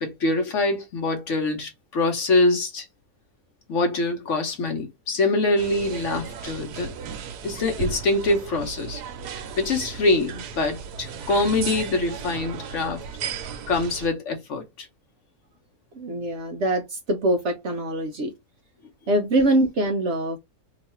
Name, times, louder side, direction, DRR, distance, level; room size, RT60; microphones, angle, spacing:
voice 1, 0.0-2.9 3.7-6.9 7.4-9.0 9.3-13.0 13.7-14.9, left 2 dB, 55° left, 1.0 m, -24 dB
sound 1, 5.6-14.1, right 6 dB, 85° right, 1.2 m, -35 dB
voice 2, 16.0-18.3 19.1-20.4, right 1 dB, 60° right, 0.8 m, -23 dB
3.0 x 2.4 x 4.1 m
omnidirectional pair, 1.7 m